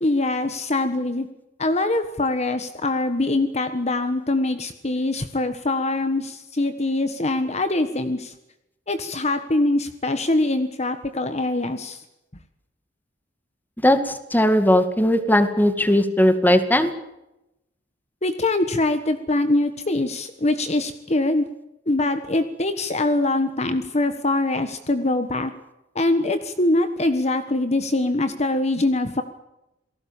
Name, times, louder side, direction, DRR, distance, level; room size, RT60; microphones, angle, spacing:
voice 1, 0.0-1.3 1.6-8.3 8.9-12.0 18.2-21.4 21.9-25.5 25.9-29.2, left 2 dB, 35° left, 9 dB, 1.4 m, -23 dB
voice 2, 13.8-16.9, left 1 dB, 10° left, 9 dB, 2.1 m, -18 dB
28.5 x 18.5 x 7.3 m, 0.90 s
head